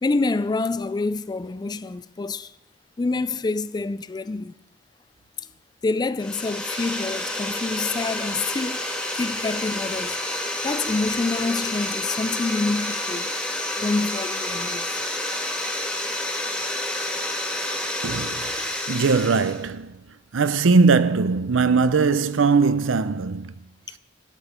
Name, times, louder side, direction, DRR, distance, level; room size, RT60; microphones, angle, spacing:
voice 1, 0.0-2.5 3.0-4.5 5.8-10.2 10.6-13.3 13.8-14.9, left 3 dB, 20° left, 0.3 m, -27 dB
sound 1, 6.2-19.6, left 1 dB, 5° left, 1.7 m, -29 dB
voice 2, 17.6-18.6 18.9-20.0 20.3-23.5, right 4 dB, 80° right, 0.6 m, -20 dB
13.0 x 9.0 x 5.1 m
head